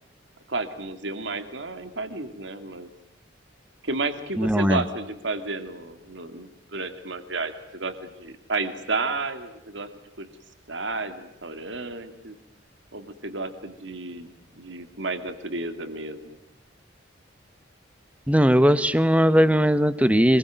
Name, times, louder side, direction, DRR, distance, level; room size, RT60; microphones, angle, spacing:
voice 1, 0.5-2.9 3.8-9.9 10.2-10.3 10.7-12.4 12.9-14.3 14.6-16.4, right 3 dB, 70° right, 9 dB, 2.4 m, -32 dB
voice 2, 4.4-4.8 18.3-20.4, equal, 5° right, 14 dB, 1.1 m, -19 dB
26.5 x 22.0 x 9.3 m, 0.84 s
head